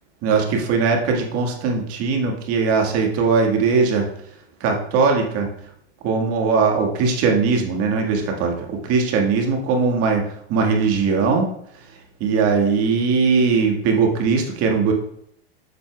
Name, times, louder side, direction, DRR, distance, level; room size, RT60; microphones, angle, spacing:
voice 1, 0.2-4.1 4.6-5.5 6.0-11.5 12.2-14.9, right 5 dB, 45° right, 2 dB, 1.7 m, -20 dB
8.2 x 6.8 x 2.3 m, 0.70 s
hypercardioid pair, 105°, 32 cm